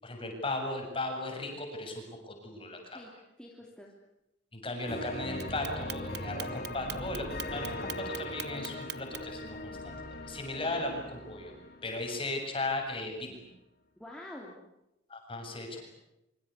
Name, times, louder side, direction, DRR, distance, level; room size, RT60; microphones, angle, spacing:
voice 1, 0.0-3.0 4.5-11.5 11.8-13.4 15.1-15.8, left 2 dB, 30° left, 3 dB, 7.5 m, -36 dB
voice 2, 3.4-3.9 14.0-14.6 15.5-15.8, left 1 dB, 5° left, -2 dB, 3.3 m, -47 dB
sound 1, 4.9-12.5, left 1 dB, 50° left, 4.5 m, -40 dB
Clock, 5.4-9.4, right 14 dB, 55° right, 1.1 m, -41 dB
25.0 x 25.0 x 8.4 m, 0.88 s
head